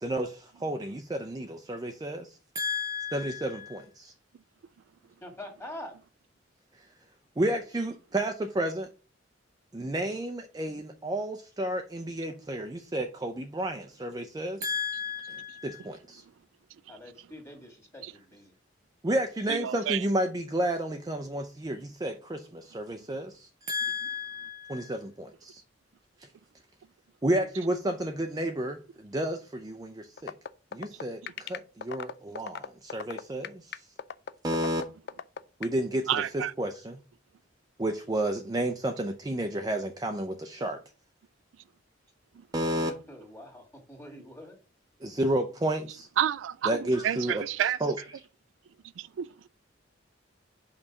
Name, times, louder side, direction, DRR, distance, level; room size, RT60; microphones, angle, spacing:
voice 1, 0.0-4.1 7.4-8.9 9.7-16.2 19.0-25.6 27.2-30.3 30.7-33.8 34.4-34.8 35.6-37.0 37.8-40.8 42.5-42.9 45.0-46.1 46.7-48.0, right 1 dB, 20° right, 0.5 m, -31 dB
voice 2, 5.2-5.9 16.9-18.5 42.7-44.6, left 1 dB, 15° left, 1.9 m, -45 dB
voice 3, 19.5-20.0 36.1-36.5 46.2-47.8 49.0-49.5, right 10 dB, 85° right, 0.3 m, -29 dB
sound 1, 30.2-35.7, left 7 dB, 60° left, 0.4 m, -36 dB
5.5 x 4.0 x 6.0 m
head